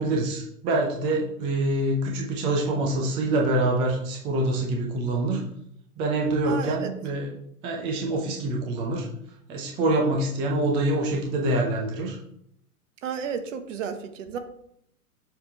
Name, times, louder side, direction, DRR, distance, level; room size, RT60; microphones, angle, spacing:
voice 1, 0.0-5.4 6.0-7.3 7.6-9.1 9.5-12.2, right 2 dB, 10° right, 0 dB, 0.4 m, -25 dB
voice 2, 6.5-6.9 13.0-14.4, right 7 dB, 50° right, 9 dB, 1.0 m, -32 dB
7.1 x 3.6 x 4.5 m, 0.73 s
hypercardioid pair, 120°, 47 cm